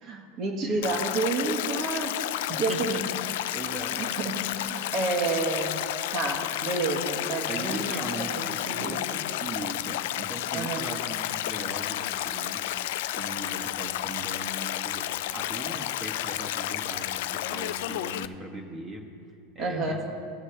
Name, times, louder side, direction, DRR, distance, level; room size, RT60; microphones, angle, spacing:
voice 1, 0.0-3.0 3.9-5.8 6.1-9.2 10.5-10.9 19.6-20.1, right 3 dB, 40° right, 2 dB, 1.5 m, -30 dB
Stream, 0.8-18.3, left 14 dB, 70° left, 0.3 m, -31 dB
voice 2, 2.5-3.0 3.5-4.0 7.5-9.0 9.4-12.6 13.1-15.1 15.3-19.1 19.5-20.2, right 2 dB, 25° right, 1 dB, 1.4 m, -39 dB
17.0 x 7.2 x 3.4 m, 2.5 s
supercardioid pair, 130°, 0 cm